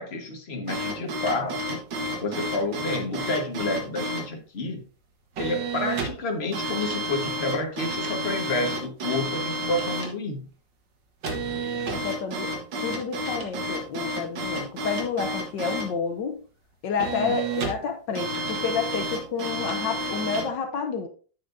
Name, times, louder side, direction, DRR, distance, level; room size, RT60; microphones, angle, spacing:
voice 1, 0.0-1.8 2.2-4.8 5.4-10.5 17.1-17.4, left 2 dB, 35° left, 3 dB, 1.6 m, -29 dB
sound 1, 0.7-4.3 5.4-6.2 6.5-10.1 11.2-15.9 17.0-17.8 18.2-20.5, right 1 dB, 75° right, 2.2 m, -31 dB
voice 2, 11.9-12.5 12.8-16.4 16.8-21.1, left 5 dB, 75° left, 6 dB, 1.4 m, -30 dB
9.7 x 8.0 x 2.7 m, 0.40 s
omnidirectional pair, 2.0 m